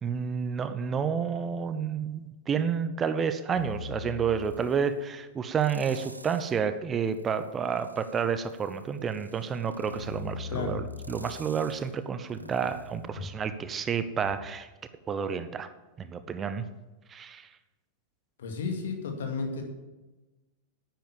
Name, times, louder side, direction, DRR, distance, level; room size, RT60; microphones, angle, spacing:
voice 1, 0.0-14.7 15.1-15.7 16.0-16.6 17.1-17.5, right 6 dB, 25° right, 11 dB, 0.8 m, -30 dB
sound 1, 3.5-4.9 5.6-6.6 7.1-13.8 14.2-14.3, left 3 dB, 85° right, 0.7 m, -43 dB
voice 2, 10.5-10.8 12.4-12.5 18.4-19.6, left 4 dB, 60° left, 4 dB, 2.2 m, -33 dB
10.0 x 9.0 x 7.2 m, 1.1 s
figure-of-eight pair, 90°, 0 cm